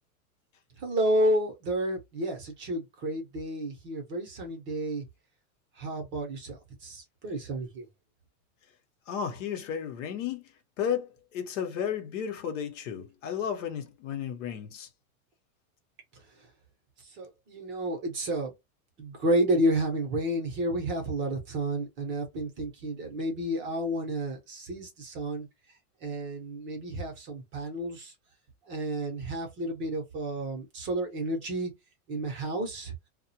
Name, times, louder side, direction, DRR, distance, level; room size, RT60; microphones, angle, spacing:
voice 1, 0.8-5.0 5.8-7.8 17.2-18.5 19.0-25.5 26.0-28.1 28.7-31.7 32.1-32.9, right 1 dB, 25° right, 0.7 m, -31 dB
voice 2, 9.1-10.4 10.8-14.9, left 8 dB, 60° left, 0.8 m, -33 dB
2.3 x 2.1 x 2.8 m
supercardioid pair, 150°, 43 cm